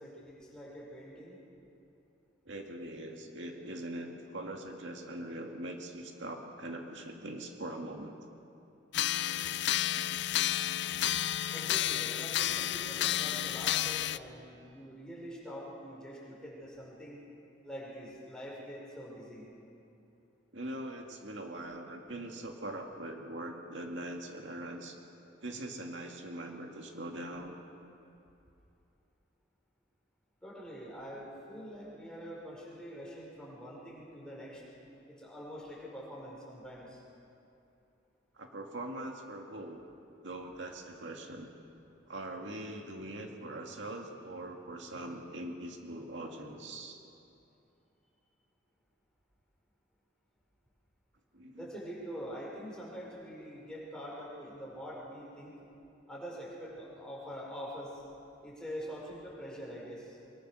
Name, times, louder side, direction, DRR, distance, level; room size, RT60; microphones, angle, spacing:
voice 1, 0.0-1.4 11.5-17.2 17.6-19.5 30.4-34.6 35.1-37.0 51.6-55.6 56.1-58.0 58.4-60.2, equal, 5° left, -4 dB, 5.3 m, -45 dB
voice 2, 2.5-8.2 9.9-10.1 10.9-11.3 20.5-25.0 25.4-27.6 38.4-39.8 40.2-41.5 42.1-47.0 51.3-51.7, right 1 dB, 70° right, 2 dB, 2.1 m, -42 dB
sound 1, 8.9-14.2, left 12 dB, 60° left, 0.4 m, -31 dB
23.5 x 22.0 x 6.4 m, 2.7 s
head